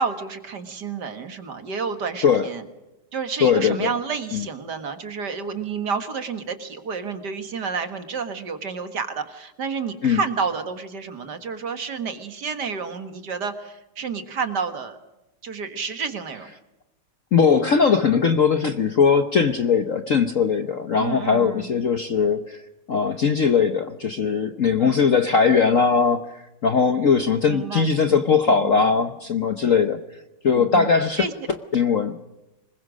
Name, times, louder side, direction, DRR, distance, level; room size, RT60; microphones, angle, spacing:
voice 1, 0.0-2.6 3.1-15.0 15.4-16.5 21.0-21.7 24.8-25.0 27.5-27.9 28.6-28.8 30.6-30.9 31.2-31.3, right 5 dB, 50° right, 9 dB, 2.1 m, -30 dB
voice 2, 3.4-3.9 4.3-4.5 10.0-10.2 17.3-22.6 22.9-26.2 26.6-30.0 30.4-31.3 31.7-32.2, left 6 dB, 50° left, 8 dB, 1.0 m, -20 dB
25.0 x 21.5 x 6.4 m, 0.99 s
omnidirectional pair, 2.4 m